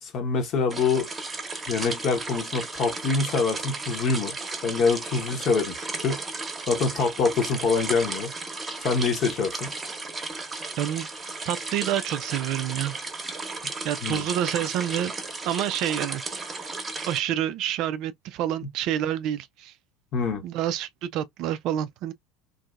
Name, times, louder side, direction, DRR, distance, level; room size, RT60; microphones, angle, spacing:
voice 1, 0.0-1.1 1.7-4.3 4.6-6.2 6.7-8.3 8.8-9.7 14.0-14.3 20.1-20.4, left 4 dB, 45° left, 1.0 m, -25 dB
sound 1, 0.7-17.2, right 3 dB, 20° right, 1.0 m, -34 dB
voice 2, 10.8-11.1 11.5-12.9 13.8-15.1 15.4-16.7 17.1-19.7 20.4-22.1, right 11 dB, 50° right, 0.4 m, -28 dB
2.7 x 2.6 x 2.3 m
figure-of-eight pair, 75°, 0 cm